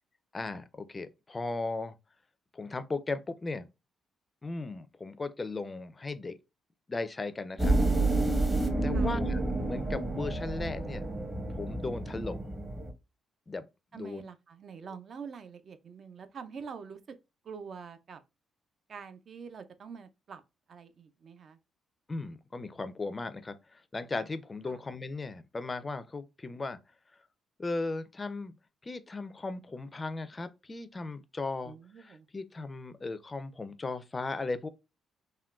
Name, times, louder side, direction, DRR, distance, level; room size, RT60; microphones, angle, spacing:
voice 1, 0.3-1.9 2.5-3.7 4.4-6.3 6.9-7.8 8.8-11.1 11.5-12.5 13.5-13.7 13.9-14.2 22.1-26.8 27.6-28.6 28.8-34.7, left 3 dB, 25° left, 0.4 m, -37 dB
sound 1, 7.6-12.9, right 2 dB, 20° right, 0.8 m, -29 dB
voice 2, 13.9-17.0 17.4-18.2 18.9-20.4 20.7-21.6 24.7-24.8 31.7-32.3, right 6 dB, 50° right, 0.4 m, -45 dB
3.6 x 2.2 x 2.3 m
cardioid pair, 90°, 0 cm